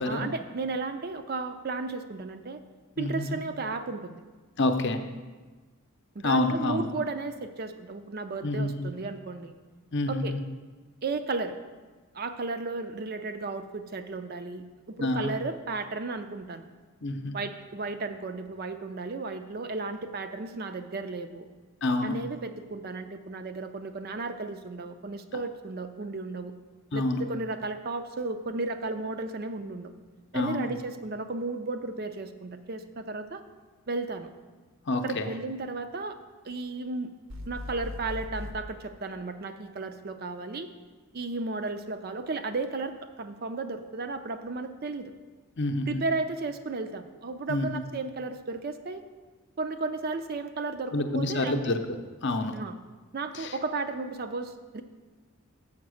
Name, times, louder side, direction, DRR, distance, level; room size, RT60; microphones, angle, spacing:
voice 1, 0.1-2.6 3.0-4.2 6.2-9.5 10.1-10.4 11.0-11.6 12.1-16.6 17.3-21.5 22.0-26.5 26.9-29.9 30.3-33.4 33.9-34.3 35.0-36.2 36.4-37.1 37.5-40.7 41.1-45.1 45.9-49.0 49.6-51.8 52.5-52.8 53.1-54.8, right 3 dB, 45° right, 9 dB, 0.5 m, -34 dB
voice 2, 3.0-3.4 4.6-5.0 6.2-6.9 8.4-8.9 9.9-10.4 15.0-15.3 17.0-17.4 21.8-22.2 26.9-27.2 30.3-30.7 34.9-35.3 45.6-46.0 47.5-47.7 50.9-52.5 53.3-53.5, left 2 dB, 50° left, 6 dB, 0.6 m, -28 dB
sound 1, 37.3-38.6, left 1 dB, 60° right, 0.8 m, -38 dB
7.2 x 5.7 x 6.3 m, 1.3 s
head